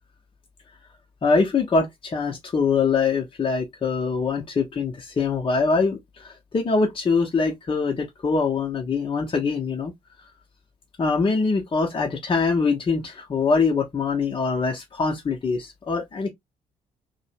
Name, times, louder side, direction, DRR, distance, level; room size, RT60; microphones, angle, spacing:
voice 1, 1.2-9.9 11.0-16.3, left 4 dB, 25° left, 0.7 m, -23 dB
2.6 x 2.1 x 2.8 m
figure-of-eight pair, 40°, 20 cm